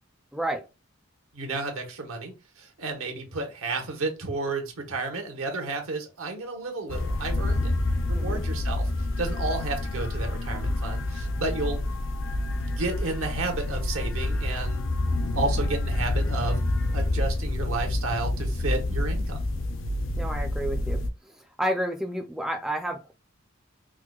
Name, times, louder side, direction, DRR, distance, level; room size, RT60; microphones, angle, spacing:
voice 1, 0.3-0.6 8.1-8.4 20.2-21.0 21.6-23.1, right 1 dB, ahead, 0.3 m, -30 dB
voice 2, 1.3-7.7 8.1-8.9 9.2-11.8 12.6-14.9 15.2-16.6 16.9-19.4, right 3 dB, 80° right, 0.9 m, -32 dB
sound 1, 6.9-21.1, left 2 dB, 60° left, 0.5 m, -28 dB
4.6 x 2.1 x 2.3 m
head